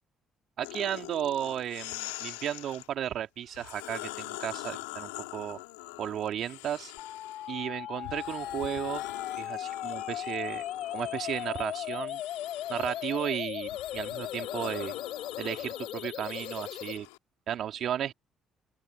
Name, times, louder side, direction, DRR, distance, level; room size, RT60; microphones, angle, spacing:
sound 1, 0.6-2.9 3.5-7.6 8.0-17.2, left 24 dB, 90° left, 2.9 m, -44 dB
voice 1, 0.6-5.6 6.0-6.9 7.5-9.0 9.4-10.6 10.9-12.2 12.7-15.0 15.4-17.1 17.5-18.1, right 10 dB, 65° right, 2.9 m, -34 dB
sound 2, 7.0-17.0, left 12 dB, 70° left, 7.7 m, -37 dB
open air
hypercardioid pair, 55°, 0 cm